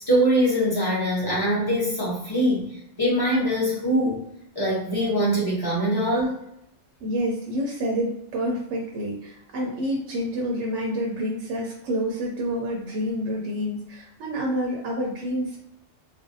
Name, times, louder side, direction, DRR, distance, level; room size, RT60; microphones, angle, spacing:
voice 1, 0.1-4.2 4.5-6.4, equal, 25° left, -5 dB, 0.6 m, -23 dB
voice 2, 7.0-15.6, equal, 70° right, -2 dB, 0.9 m, -28 dB
2.5 x 2.1 x 2.6 m, 0.80 s
omnidirectional pair, 1.3 m